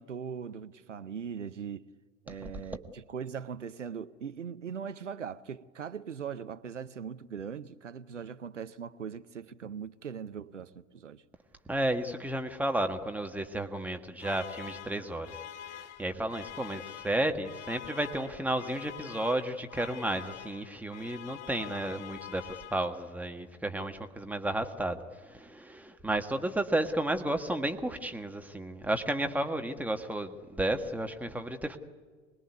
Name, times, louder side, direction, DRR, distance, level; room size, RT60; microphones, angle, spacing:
voice 1, 0.0-1.9 2.3-11.2, right 7 dB, 85° right, 0.7 m, -40 dB
voice 2, 11.7-15.4 15.6-31.8, right 1 dB, 5° right, 1.6 m, -32 dB
sound 1, 14.2-23.2, left 11 dB, 45° left, 2.2 m, -46 dB
24.5 x 20.5 x 9.6 m
figure-of-eight pair, 80°, 36 cm